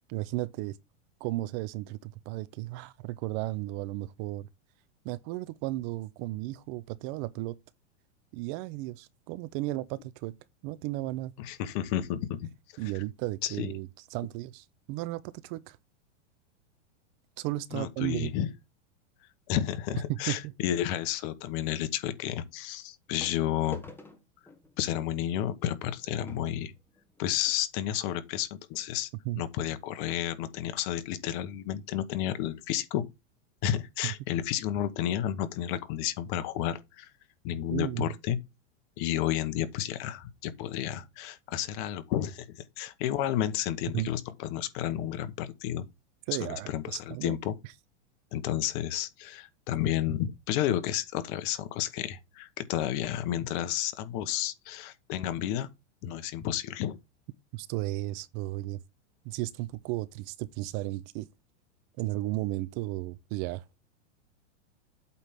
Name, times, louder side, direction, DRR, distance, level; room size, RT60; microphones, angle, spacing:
voice 1, 0.1-0.8 1.2-4.5 5.0-7.6 8.3-10.4 10.6-11.3 12.8-15.8 17.4-18.3 20.1-20.5 29.2-29.4 34.0-34.1 37.7-38.1 43.9-44.1 46.3-47.4 57.5-58.8 59.2-61.3 62.0-63.6, right 17 dB, 40° right, 0.6 m, -34 dB
voice 2, 11.4-12.4 13.4-13.7 17.7-18.5 19.5-23.8 24.8-26.7 27.2-29.1 29.4-33.0 33.6-37.1 37.4-38.4 39.0-45.9 46.4-47.5 48.3-55.7 56.0-57.0, left 11 dB, 45° left, 1.1 m, -31 dB
sound 1, 23.2-27.6 28.4-28.5 28.7-28.9 29.4-29.5, left 2 dB, 5° left, 1.3 m, -51 dB
8.3 x 3.5 x 5.7 m
supercardioid pair, 140°, 35 cm